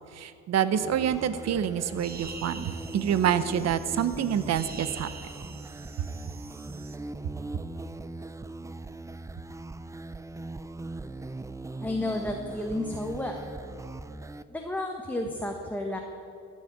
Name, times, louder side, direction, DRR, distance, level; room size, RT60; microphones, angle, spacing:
voice 1, 0.1-5.1, right 9 dB, 60° right, 13 dB, 0.8 m, -27 dB
sound 1, 0.7-14.4, right 2 dB, 10° right, 0.4 m, -40 dB
sound 2, 2.0-7.0, right 4 dB, 30° right, 1.0 m, -45 dB
voice 2, 11.8-13.4 14.5-16.0, left 1 dB, 5° left, 1 dB, 1.1 m, -31 dB
14.0 x 6.4 x 8.6 m, 2.7 s
cardioid pair, 90°, 30 cm